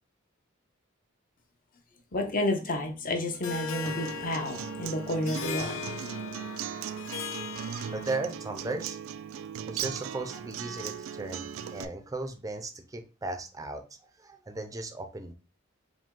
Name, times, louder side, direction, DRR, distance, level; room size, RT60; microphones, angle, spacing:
voice 1, 2.1-5.9, left 1 dB, 45° left, 4 dB, 0.8 m, -31 dB
Harp, 3.4-8.4, left 7 dB, 65° left, 0.5 m, -39 dB
Acoustic guitar, 3.9-11.8, right 8 dB, 70° right, 0.3 m, -38 dB
voice 2, 7.9-9.0 9.4-13.8 14.2-15.3, right 2 dB, 15° right, 6 dB, 0.5 m, -36 dB
5.1 x 2.2 x 3.7 m, 0.32 s
head